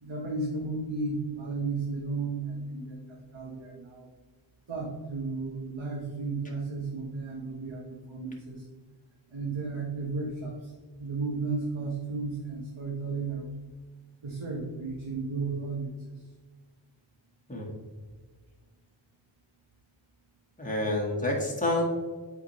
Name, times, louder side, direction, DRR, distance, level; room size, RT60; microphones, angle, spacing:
voice 1, 0.0-3.0 3.3-4.1 4.7-8.6 9.3-10.7 11.0-13.5 14.2-15.9, right 3 dB, 70° right, -1 dB, 1.1 m, -34 dB
voice 2, 20.6-21.8, left 1 dB, 15° left, -2 dB, 1.5 m, -28 dB
7.9 x 4.8 x 3.1 m, 1.4 s
wide cardioid pair, 55°, 48 cm